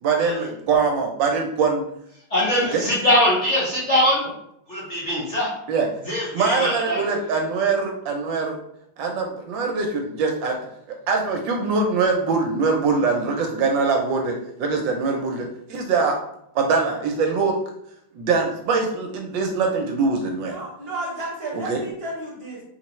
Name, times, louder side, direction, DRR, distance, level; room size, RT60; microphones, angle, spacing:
voice 1, 0.0-1.8 2.7-2.9 5.7-5.9 6.3-8.6 9.0-10.5 11.1-16.2 16.5-17.5 18.2-20.6 21.7-21.8, right 4 dB, 75° right, 2 dB, 1.2 m, -23 dB
voice 2, 2.3-4.2 4.7-5.5 6.1-7.0, left 1 dB, 45° left, -6 dB, 0.9 m, -21 dB
voice 3, 20.5-22.6, right 1 dB, 35° right, -4 dB, 1.1 m, -32 dB
4.4 x 3.2 x 3.0 m, 0.76 s
omnidirectional pair, 2.2 m